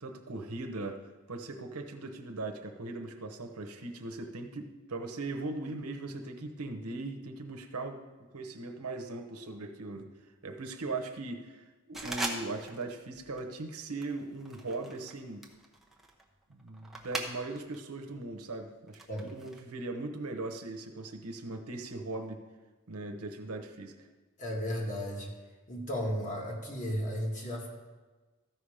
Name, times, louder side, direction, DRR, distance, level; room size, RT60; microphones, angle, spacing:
voice 1, 0.0-8.0 8.3-10.1 10.4-15.4 16.5-22.4 22.9-24.1, right 2 dB, 80° right, 5 dB, 1.0 m, -39 dB
sound 1, 11.9-12.9 13.1-13.5 14.0-17.8 18.1-19.6, right 2 dB, ahead, 0.8 m, -41 dB
voice 2, 24.4-25.3 25.7-27.7, equal, 35° left, -1 dB, 1.8 m, -34 dB
14.0 x 5.8 x 5.0 m, 1.3 s
head